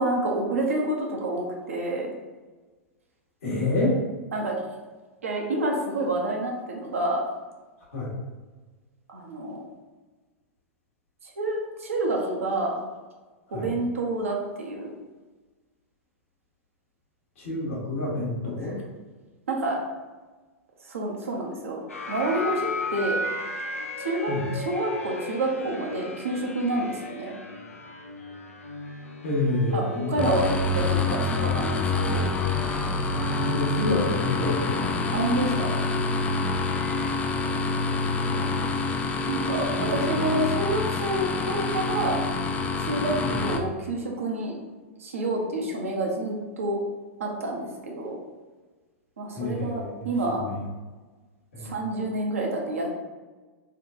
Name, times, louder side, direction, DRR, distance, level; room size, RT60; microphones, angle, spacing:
voice 1, 0.0-2.1 4.3-4.6 5.2-7.2 9.1-9.6 11.2-12.8 13.5-14.9 18.6-18.7 19.5-19.8 20.9-23.2 24.0-27.4 29.7-30.5 30.7-32.3 35.1-35.8 38.3-38.5 39.3-42.2 42.8-44.6 45.0-46.8 47.2-48.2 49.2-50.4 51.6-53.0, right 2 dB, 75° right, 0 dB, 0.8 m, -28 dB
voice 2, 3.4-4.0 7.9-8.1 13.5-13.7 17.4-18.8 24.3-24.5 29.2-30.1 33.4-35.3 36.3-36.5 39.8-39.9 43.2-43.5 49.3-50.6 51.5-51.8, left 2 dB, 70° left, -5 dB, 1.4 m, -28 dB
sound 1, 21.9-37.1, left 2 dB, 85° left, 0.4 m, -36 dB
sound 2, 30.2-43.6, left 3 dB, 15° left, 0.3 m, -27 dB
4.1 x 2.3 x 2.6 m, 1.3 s
figure-of-eight pair, 95°, 7 cm